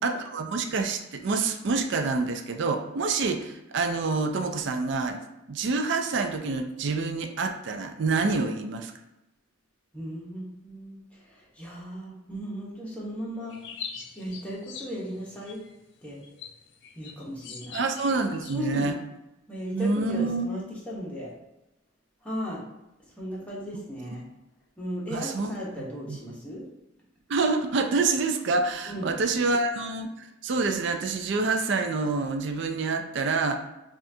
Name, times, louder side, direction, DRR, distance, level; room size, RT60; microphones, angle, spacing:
voice 1, 0.0-5.2 5.5-8.9 17.7-19.0 19.7-20.5 25.1-25.5 25.8-26.2 27.3-33.6, right 3 dB, 60° right, 5 dB, 0.4 m, -27 dB
voice 2, 9.9-13.5 14.2-15.6 16.0-16.2 17.0-17.8 18.5-18.9 19.5-21.3 22.2-22.6 23.2-24.2 24.8-26.6 28.9-29.1, equal, 5° left, -5 dB, 0.9 m, -36 dB
sound 1, 13.5-18.9, left 6 dB, 60° left, 0.5 m, -43 dB
5.7 x 2.4 x 2.7 m, 0.93 s
head